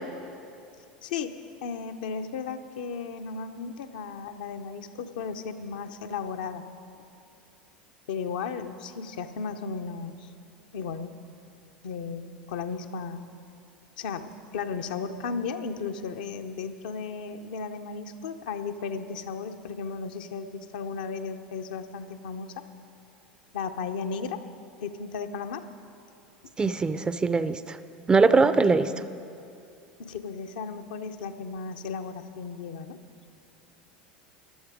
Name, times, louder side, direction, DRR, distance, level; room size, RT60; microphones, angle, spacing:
voice 1, 1.0-1.3 1.6-6.6 8.1-10.3 10.7-11.1 11.8-13.2 14.0-22.6 23.5-24.4 24.8-25.6 30.0-33.0, left 5 dB, 65° left, 7 dB, 0.7 m, -35 dB
voice 2, 26.6-27.8 28.1-28.9, right 4 dB, 20° right, 13 dB, 0.5 m, -21 dB
14.5 x 11.5 x 4.9 m, 2.5 s
figure-of-eight pair, 80°, 5 cm